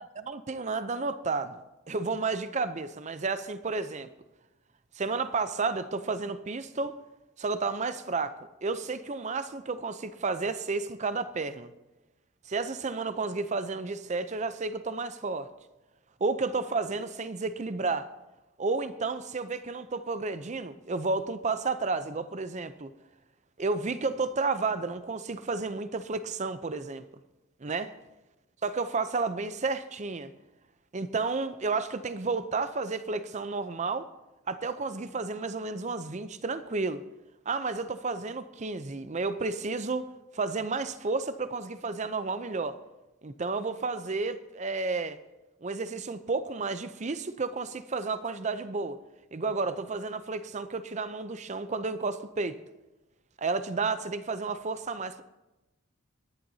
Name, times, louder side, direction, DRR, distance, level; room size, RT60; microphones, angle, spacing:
voice 1, 0.0-1.6 1.9-4.1 5.0-7.0 7.4-11.7 12.5-15.5 16.2-18.1 18.6-22.9 23.6-27.0 27.6-27.9 28.6-30.3 30.9-34.1 34.5-37.0 37.5-42.8 43.2-45.2 45.6-49.0 49.3-52.6 53.4-55.2, right 4 dB, 35° right, 0.6 m, -31 dB
23.5 x 10.5 x 2.8 m
head